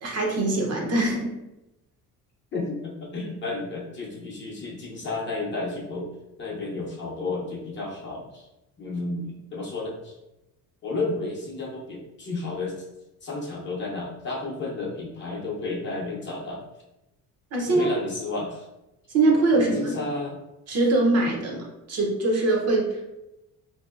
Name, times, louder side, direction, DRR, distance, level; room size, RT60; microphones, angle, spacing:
voice 1, 0.0-1.3 17.5-17.9 19.1-20.0 20.7-23.0, right 2 dB, 45° right, -1 dB, 0.7 m, -23 dB
voice 2, 2.5-6.1 6.4-8.5 8.8-10.2 10.8-12.8 13.2-16.6 17.7-18.6 19.5-20.4, left 2 dB, 30° left, -3 dB, 0.7 m, -32 dB
3.6 x 2.6 x 2.4 m, 0.94 s
cardioid pair, 155°, 35 cm